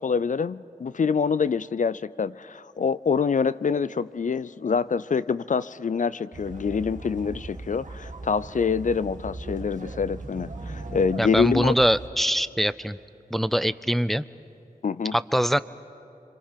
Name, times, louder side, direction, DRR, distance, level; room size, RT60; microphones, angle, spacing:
voice 1, 0.0-11.7 14.8-15.1, left 5 dB, 55° left, 17 dB, 0.4 m, -26 dB
sound 1, 6.3-12.1, right 2 dB, 55° right, 1.6 m, -38 dB
voice 2, 11.2-13.0 13.3-14.2 15.1-15.6, equal, ahead, 15 dB, 0.5 m, -23 dB
27.0 x 25.0 x 5.8 m, 2.7 s
cardioid pair, 45°, 15 cm